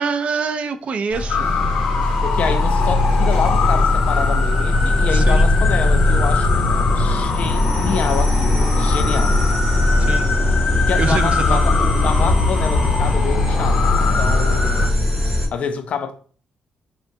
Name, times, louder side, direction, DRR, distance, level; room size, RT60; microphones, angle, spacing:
voice 1, 0.0-1.6 5.1-5.5 10.0-10.3 11.0-11.7, right 5 dB, 55° right, 0.3 m, -25 dB
sound 1, 1.1-15.5, left 1 dB, 25° right, 1.2 m, -19 dB
sound 2, 1.3-14.9, left 5 dB, 80° left, 0.8 m, -23 dB
voice 2, 2.2-6.5 6.9-9.4 10.9-15.2 15.5-16.1, left 6 dB, 60° left, 0.4 m, -27 dB
3.7 x 2.1 x 2.6 m
cardioid pair, 100°, 3 cm